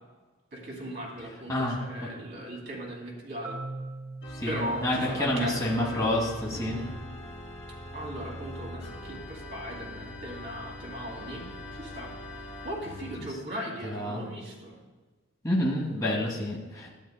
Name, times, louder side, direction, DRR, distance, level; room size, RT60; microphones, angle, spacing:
voice 1, 0.5-3.6 4.5-6.2 6.5-6.9 7.9-11.5 11.7-12.1 12.6-14.8, right 1 dB, 50° right, -3 dB, 2.3 m, -38 dB
voice 2, 1.5-2.1 4.3-6.8 13.8-14.2 15.4-16.9, left 1 dB, 15° left, -3 dB, 1.1 m, -29 dB
Marimba xylophone, 3.4-7.3, right 2 dB, 10° right, 0.5 m, -43 dB
Organ, 4.2-13.3, left 1 dB, 50° left, 2.5 m, -42 dB
12.0 x 7.9 x 2.2 m, 1.3 s
head